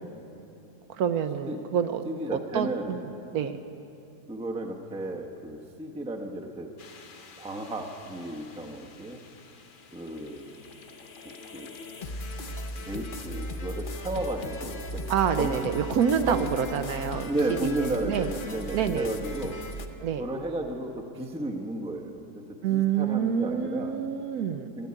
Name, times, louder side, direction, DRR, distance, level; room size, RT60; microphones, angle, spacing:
voice 1, 0.9-2.0 2.3-3.6 15.1-17.3 17.6-18.3 18.7-19.1 20.0-20.2 22.6-24.7, right 8 dB, 70° right, 9 dB, 1.0 m, -27 dB
voice 2, 2.0-2.9 4.3-6.7 7.4-9.2 9.9-10.6 11.5-11.7 12.8-15.0 15.3-15.6 16.3-16.4 17.2-19.6 20.2-23.9 24.8-24.9, right 1 dB, 5° right, 2 dB, 0.6 m, -33 dB
sound 1, 6.8-19.9, left 1 dB, 45° left, 0.7 m, -39 dB
13.5 x 9.3 x 9.7 m, 2.8 s
omnidirectional pair, 1.7 m